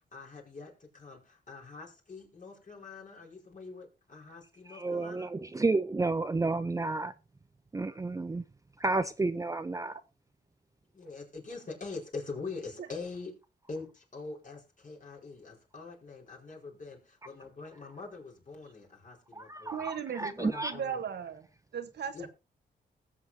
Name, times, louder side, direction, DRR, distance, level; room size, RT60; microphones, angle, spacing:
voice 1, 0.1-5.3 10.9-13.3 13.7-19.9 20.4-21.0 22.1-22.3, left 4 dB, 45° left, 0 dB, 4.8 m, -44 dB
voice 2, 4.7-7.1 7.7-8.4 8.8-10.0 19.3-20.7, right 3 dB, 20° right, 11 dB, 0.5 m, -31 dB
voice 3, 19.7-21.4 21.7-22.3, right 8 dB, 70° right, 9 dB, 1.3 m, -37 dB
19.5 x 7.6 x 2.8 m, 0.28 s
cardioid pair, 85°, 18 cm